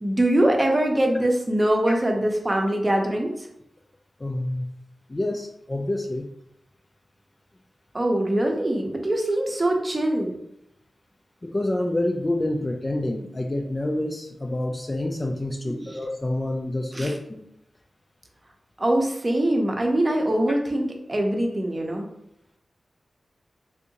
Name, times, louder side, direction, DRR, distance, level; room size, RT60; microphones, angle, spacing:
voice 1, 0.0-3.5 7.9-10.3 15.7-16.0 16.9-17.1 18.8-22.1, right 1 dB, 30° right, 1 dB, 0.7 m, -23 dB
voice 2, 4.2-4.7 5.1-6.3 11.4-17.4, left 1 dB, 25° left, 2 dB, 0.3 m, -27 dB
3.5 x 2.6 x 2.8 m, 0.77 s
wide cardioid pair, 80°, 0 cm